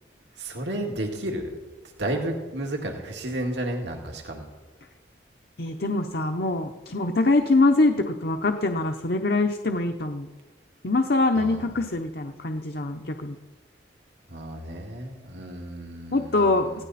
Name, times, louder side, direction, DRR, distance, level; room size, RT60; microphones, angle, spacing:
voice 1, 0.4-1.6 2.0-4.5 11.4-11.6 14.3-16.5, right 1 dB, 80° right, 2 dB, 2.2 m, -32 dB
voice 2, 5.6-10.3 10.8-13.4 16.1-16.8, left 2 dB, 60° left, 5 dB, 0.9 m, -24 dB
20.0 x 17.0 x 4.2 m, 1.3 s
head